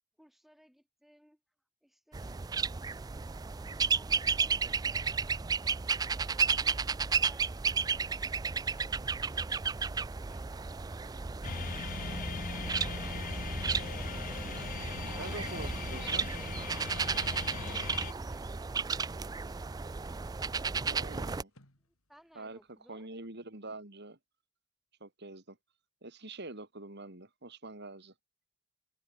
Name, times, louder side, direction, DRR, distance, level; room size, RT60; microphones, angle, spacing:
voice 1, 0.2-1.4 1.8-2.5 3.5-5.5 6.1-9.7 14.1-15.4 15.6-16.6 17.5-19.4 21.9-23.1, equal, ahead, 4.4 m, -61 dB
sound 1, 2.1-21.4, right 5 dB, 20° right, 0.3 m, -33 dB
sound 2, 11.4-18.1, left 5 dB, 40° left, 0.5 m, -40 dB
voice 2, 15.2-16.3 20.8-21.5 22.3-22.6 22.9-24.2 25.0-25.6 26.0-28.1, right 2 dB, 50° right, 3.3 m, -45 dB
sound 3, 16.6-23.2, left 1 dB, 80° left, 7.9 m, -71 dB
open air
head